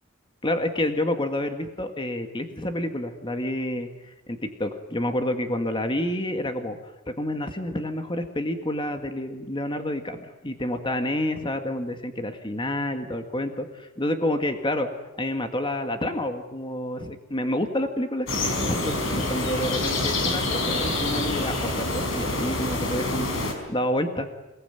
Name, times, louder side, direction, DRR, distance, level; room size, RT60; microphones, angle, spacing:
voice 1, 0.4-6.8 7.1-14.9 15.2-24.3, left 1 dB, 25° left, 6 dB, 1.9 m, -29 dB
sound 1, 18.3-23.5, left 2 dB, 70° left, 5.2 m, -26 dB
28.0 x 19.5 x 9.2 m, 0.99 s
head